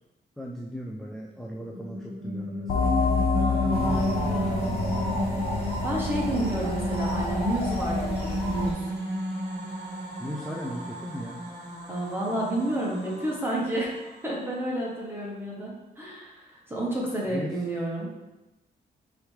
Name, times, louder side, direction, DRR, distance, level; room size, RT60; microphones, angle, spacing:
voice 1, 0.4-3.0 3.9-4.1 6.3-6.7 10.2-11.4 17.2-17.5, equal, 5° left, -1 dB, 0.3 m, -37 dB
sound 1, 1.4-14.7, equal, 70° right, 1.1 m, -33 dB
sound 2, 2.7-8.0, left 4 dB, 60° left, 0.6 m, -28 dB
voice 2, 3.3-4.7 5.6-8.9 11.9-13.9 14.2-18.1, right 1 dB, 10° right, -4 dB, 0.9 m, -31 dB
sound 3, 3.7-8.7, equal, 35° left, 0.9 m, -32 dB
4.7 x 3.4 x 3.2 m, 1.0 s
wide cardioid pair, 145°, 17 cm